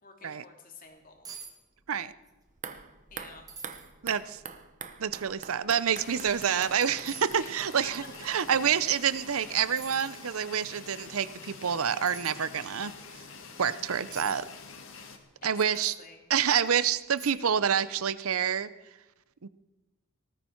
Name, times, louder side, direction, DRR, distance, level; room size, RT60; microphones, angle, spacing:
voice 1, 0.0-1.3 3.1-3.5 7.4-7.5 7.8-7.9 15.4-16.2, left 4 dB, 40° left, 3 dB, 2.5 m, -50 dB
sound 1, 0.9-1.0 1.2-1.5 1.8-2.4 2.7-2.8 3.5-3.9 4.5-4.6 6.1-6.3 7.1-7.3 9.2-9.4 9.8-10.3 12.1-12.4 14.1-14.4 15.7-16.0 16.6-16.7 17.2-17.6 17.9-18.0, right 6 dB, 15° right, 1.5 m, -45 dB
sound 2, 2.5-9.6 9.9-10.0, right 6 dB, 35° right, 0.8 m, -46 dB
voice 2, 4.0-4.4 5.0-12.9 13.6-14.4 15.4-15.9 16.3-18.7 19.4-19.5, right 8 dB, 70° right, 16 dB, 0.6 m, -28 dB
sound 3, 5.9-15.2, left 4 dB, 60° left, 1.9 m, -47 dB
19.0 x 14.0 x 4.5 m, 1.1 s
head